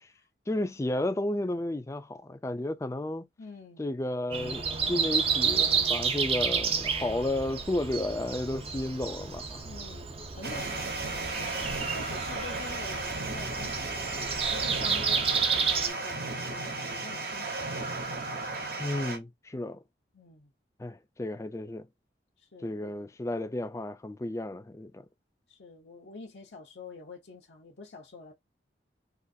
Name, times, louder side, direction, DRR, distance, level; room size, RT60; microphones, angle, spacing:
voice 1, 0.5-3.3 3.8-9.6 18.8-19.8 20.8-21.9 22.6-25.1, left 1 dB, 15° left, 0.4 m, -32 dB
voice 2, 3.4-3.8 9.6-18.4 20.1-20.5 22.4-22.9 25.5-28.3, left 3 dB, 80° left, 0.8 m, -47 dB
Breathing, 4.3-15.9, right 6 dB, 35° right, 0.5 m, -30 dB
sound 1, 10.4-19.2, right 3 dB, 60° right, 0.8 m, -34 dB
3.8 x 2.4 x 2.6 m
head